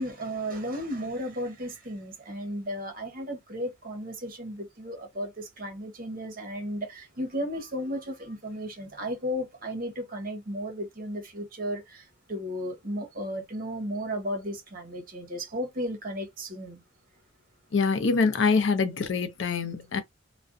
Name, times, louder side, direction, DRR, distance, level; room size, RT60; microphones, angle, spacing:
voice 1, 0.0-16.8, equal, 45° right, 0.8 m, -34 dB
voice 2, 17.7-20.0, left 4 dB, 65° left, 0.5 m, -25 dB
2.5 x 2.1 x 2.4 m
head